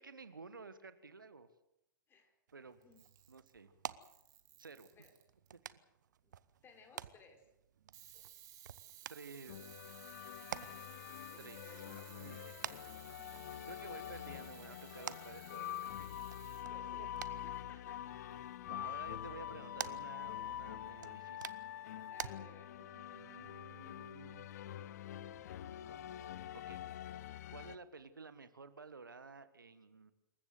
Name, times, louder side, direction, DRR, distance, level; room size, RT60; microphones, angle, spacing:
voice 1, 0.0-1.5 2.5-2.8 3.3-3.7 4.6-4.9 9.1-9.7 11.4-11.6 11.9-12.5 13.7-16.3 17.0-17.4 18.0-18.1 18.6-21.5 22.8-24.5 26.5-26.8 27.5-30.1, right 4 dB, 80° right, 12 dB, 1.6 m, -53 dB
sound 1, 2.5-22.3, right 9 dB, 60° right, 0.9 m, -51 dB
Camera, 2.8-3.6 4.0-5.5 7.9-16.7, right 12 dB, 30° right, 3.9 m, -58 dB
voice 2, 6.6-7.4 11.3-12.5 13.2-13.5 16.7-18.2 18.8-19.0 22.1-22.8, left 3 dB, 20° left, 5 dB, 4.7 m, -61 dB
sound 2, 9.5-27.8, left 11 dB, 55° left, 0.9 m, -46 dB
27.0 x 15.0 x 7.9 m, 0.84 s
figure-of-eight pair, 100°, 11 cm